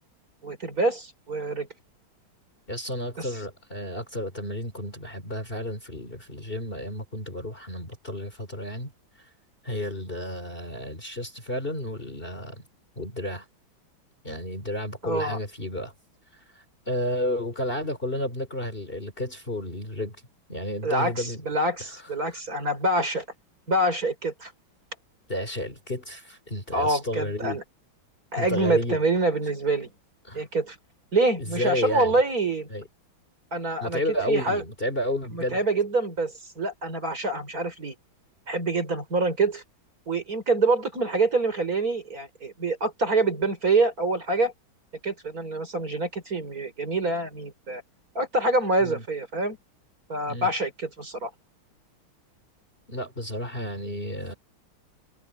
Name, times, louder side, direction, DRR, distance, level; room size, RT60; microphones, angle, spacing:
voice 1, 0.4-1.7 3.2-3.3 15.0-15.4 20.8-23.2 23.7-24.5 26.7-27.6 28.3-29.9 30.3-30.8 31.1-32.7 33.5-34.0 34.3-34.6 35.3-38.0 38.5-39.6 40.1-44.5 45.0-47.8 48.2-49.6 50.1-51.3, right 2 dB, 45° right, 5.4 m, -26 dB
voice 2, 2.7-8.9 9.6-12.6 13.0-13.4 14.2-15.9 16.5-20.2 20.5-21.4 22.3-22.4 25.3-27.6 28.4-29.0 30.2-30.4 31.4-32.2 32.7-32.9 33.8-35.6 48.8-49.0 50.3-50.5 52.9-54.4, left 1 dB, 25° left, 3.4 m, -32 dB
omnidirectional pair, 2.2 m